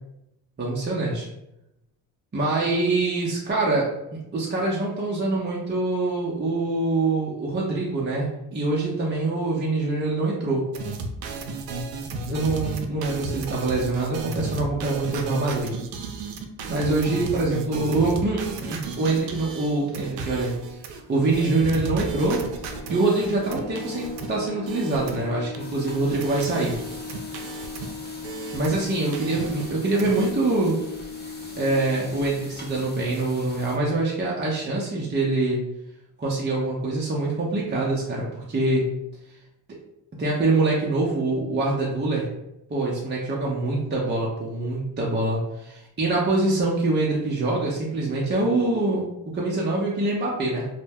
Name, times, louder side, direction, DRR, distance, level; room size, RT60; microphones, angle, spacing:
voice 1, 0.6-1.3 2.3-10.6 12.3-15.7 16.7-20.8 21.1-22.5 22.7-26.8 28.5-30.7 31.6-35.6 36.2-38.8 40.2-42.3 42.7-50.7, right 2 dB, 25° right, -4 dB, 0.6 m, -24 dB
sound 1, 10.7-25.6 25.8-28.9 29.1-30.3, right 3 dB, 70° right, 0.5 m, -34 dB
sound 2, 22.2-33.5, left 5 dB, 55° left, 0.6 m, -39 dB
sound 3, 25.6-33.8, left 1 dB, 20° left, 0.8 m, -44 dB
2.1 x 2.1 x 3.4 m, 0.88 s
supercardioid pair, 60°, 45 cm